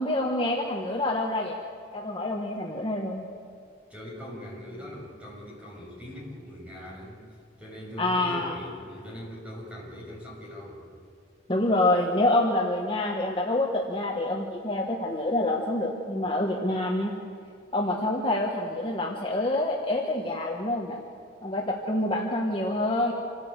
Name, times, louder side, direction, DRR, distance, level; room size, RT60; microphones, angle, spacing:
voice 1, 0.0-1.6 1.9-3.3 8.0-8.5 11.5-17.1 17.7-21.0 21.4-23.1, left 1 dB, 25° left, -1 dB, 1.6 m, -27 dB
voice 2, 3.9-7.2 7.6-10.8, equal, 5° right, -4 dB, 7.4 m, -41 dB
27.5 x 16.0 x 8.3 m, 2.4 s
head